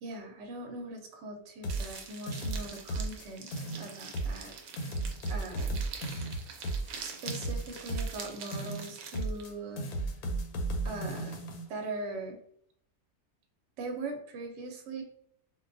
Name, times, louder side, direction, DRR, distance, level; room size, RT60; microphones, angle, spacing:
voice 1, 0.0-4.5 5.3-5.8 7.0-9.9 10.8-11.4 11.7-12.4 13.8-15.0, right 2 dB, 60° right, 2 dB, 0.9 m, -40 dB
sound 1, 1.6-3.3 3.5-4.5 4.8-8.3 8.5-9.5 9.8-11.6, right 2 dB, 90° left, 1.2 m, -35 dB
sound 2, 1.7-9.5, right 6 dB, 90° right, 1.1 m, -45 dB
4.2 x 2.2 x 2.6 m, 0.68 s
omnidirectional pair, 1.5 m